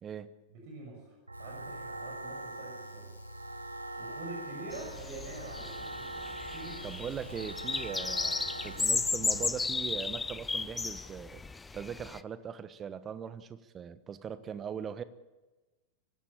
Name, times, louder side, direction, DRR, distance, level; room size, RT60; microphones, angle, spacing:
voice 1, 0.5-3.1 4.0-6.0 6.5-6.8, right 2 dB, 50° right, 1 dB, 6.4 m, -45 dB
sound 1, 1.3-8.8, left 1 dB, 90° left, 6.4 m, -60 dB
sound 2, 1.3-9.5, right 1 dB, 80° right, 1.3 m, -42 dB
sound 3, 4.7-12.2, left 4 dB, 10° left, 0.6 m, -35 dB
voice 2, 6.8-11.4 11.7-15.0, right 7 dB, 25° right, 14 dB, 1.2 m, -40 dB
24.0 x 16.5 x 8.7 m, 1.2 s
figure-of-eight pair, 90°, 0 cm